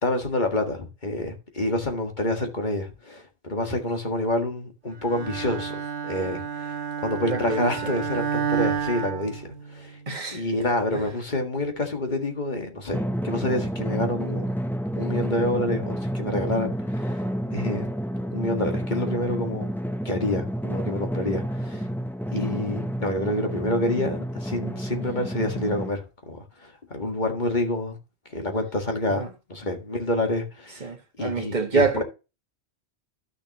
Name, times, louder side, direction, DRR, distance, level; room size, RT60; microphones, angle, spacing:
voice 1, 0.0-6.7 7.0-10.0 10.3-14.5 15.0-17.2 17.5-17.9 18.3-19.7 20.1-21.8 22.3-28.0 28.3-30.9 31.2-32.0, left 1 dB, 45° left, 1.9 m, -28 dB
Bowed string instrument, 5.0-10.0, right 7 dB, 80° right, 1.1 m, -30 dB
voice 2, 7.3-7.9 10.1-10.5 10.9-11.0 29.1-29.3 30.8-32.0, right 4 dB, 40° right, 1.7 m, -26 dB
Drum, 12.9-25.9, equal, 5° left, 0.4 m, -30 dB
12.0 x 6.5 x 3.0 m
omnidirectional pair, 1.1 m